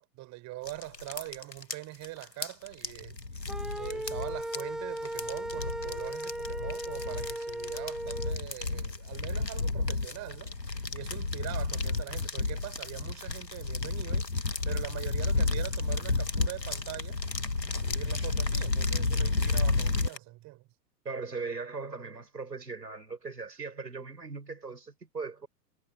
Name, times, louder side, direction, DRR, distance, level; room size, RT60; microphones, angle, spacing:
voice 1, 0.0-3.2 3.8-17.2 17.6-20.7, right 18 dB, 35° right, 7.7 m, -43 dB
sound 1, 0.6-20.2, left 3 dB, 90° left, 2.1 m, -32 dB
sound 2, 3.5-8.3, right 1 dB, ahead, 0.6 m, -37 dB
voice 2, 21.0-25.5, right 4 dB, 80° right, 5.6 m, -39 dB
figure-of-eight pair, 100°, 48 cm